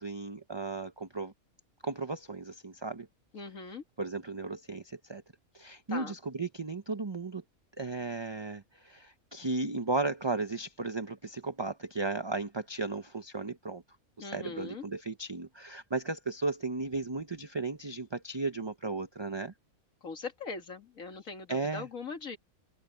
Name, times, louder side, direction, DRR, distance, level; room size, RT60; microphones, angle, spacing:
voice 1, 0.0-1.3 1.8-3.1 4.0-5.2 5.5-7.4 7.8-13.8 14.2-19.5 21.5-21.9, right 3 dB, 20° right, 0.9 m, -35 dB
voice 2, 3.3-3.8 5.9-6.1 14.2-14.8 20.0-22.4, left 4 dB, 75° left, 2.5 m, -41 dB
omnidirectional pair, 1.4 m